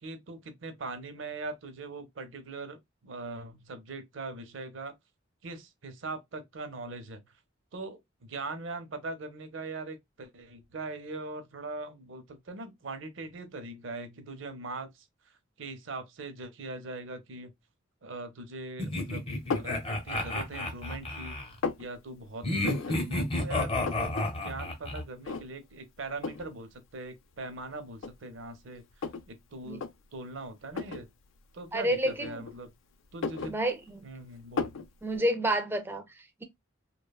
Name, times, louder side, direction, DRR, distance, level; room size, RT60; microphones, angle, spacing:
voice 1, 0.0-4.9 5.4-7.3 7.7-17.5 18.0-21.4 21.8-29.8 30.1-31.1 31.5-32.7 33.1-33.5 34.0-34.8, right 3 dB, 75° right, 0.6 m, -41 dB
sound 1, 18.8-21.5 22.4-25.0, left 2 dB, 30° left, 0.6 m, -31 dB
sound 2, 19.5-19.8 20.4-21.0 21.3-21.9 22.6-23.0 23.3-23.4 23.6-24.3 24.6-24.7 25.2-25.7 26.2-26.5 27.3-27.4 28.0-29.3 29.7-29.9 30.7-31.1 32.0-32.7 33.0-34.1 34.6-34.9, left 4 dB, 80° left, 0.4 m, -34 dB
voice 2, 31.7-32.5 33.5-34.1 35.0-36.4, right 1 dB, 10° right, 0.4 m, -30 dB
2.9 x 2.1 x 2.2 m
head